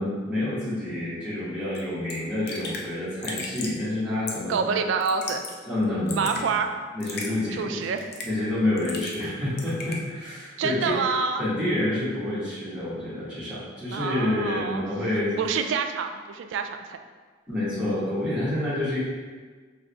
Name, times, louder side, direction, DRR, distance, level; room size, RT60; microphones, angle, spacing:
voice 1, 0.0-4.7 5.6-6.5 6.9-7.9 8.2-10.9 11.4-15.3 17.5-19.0, left 1 dB, 5° right, -12 dB, 1.4 m, -28 dB
Raindrop / Drip, 1.7-1.8 2.1-2.2 2.5-2.9 3.2-3.8 4.3-4.6 5.0-5.6 5.8-6.4 7.0-7.3 8.0-8.4 8.8-9.3 9.6-10.0, left 4 dB, 50° left, 0.5 m, -35 dB
voice 2, 4.5-5.4 6.1-6.7 7.5-8.0 10.6-11.4 13.9-14.8 15.4-17.0, right 5 dB, 70° right, 6 dB, 0.3 m, -27 dB
4.8 x 2.6 x 3.3 m, 1.4 s
head